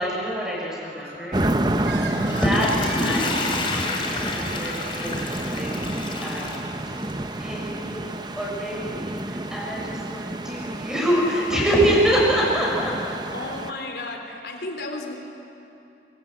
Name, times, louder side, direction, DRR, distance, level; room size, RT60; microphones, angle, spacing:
voice 1, 0.0-1.9 2.4-6.8 7.4-12.9, equal, 5° right, -4 dB, 6.4 m, -26 dB
Bird, 0.6-3.6, right 2 dB, 80° right, 4.0 m, -39 dB
sound 1, 1.3-13.7, right 1 dB, 25° right, 0.8 m, -30 dB
Water / Toilet flush, 2.0-7.3 7.8-7.9, left 2 dB, 30° left, 2.9 m, -29 dB
voice 2, 11.5-11.9 13.3-15.1, left 2 dB, 70° left, 3 dB, 3.7 m, -33 dB
24.0 x 23.5 x 9.3 m, 2.8 s
head